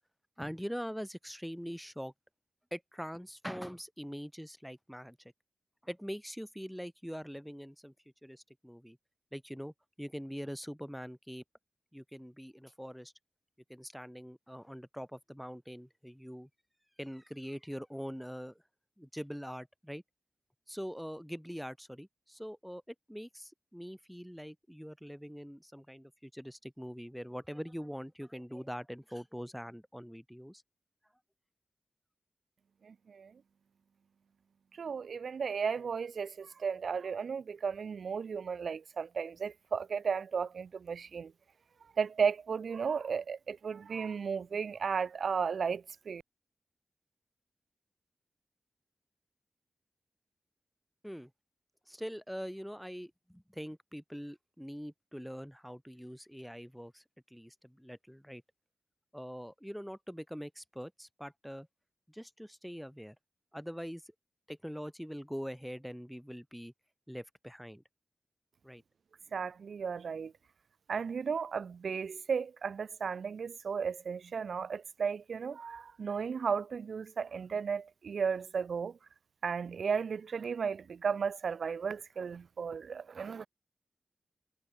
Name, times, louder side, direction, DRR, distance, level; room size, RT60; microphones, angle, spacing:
voice 1, 0.4-2.1 2.7-5.2 5.8-7.9 8.2-9.0 9.3-11.4 11.9-13.1 13.7-16.5 17.0-18.6 19.0-20.0 20.7-30.6 51.0-51.3 51.9-57.0 57.3-58.4 59.1-61.7 62.1-63.2 63.5-64.1 64.5-66.7 67.1-67.8 68.6-68.8, equal, ahead, 0.9 m, -43 dB
voice 2, 32.8-33.3 34.8-41.3 42.0-46.2 69.3-70.3 70.9-79.0 79.4-83.5, right 6 dB, 75° right, 0.4 m, -34 dB
cardioid pair, 50°, 0 cm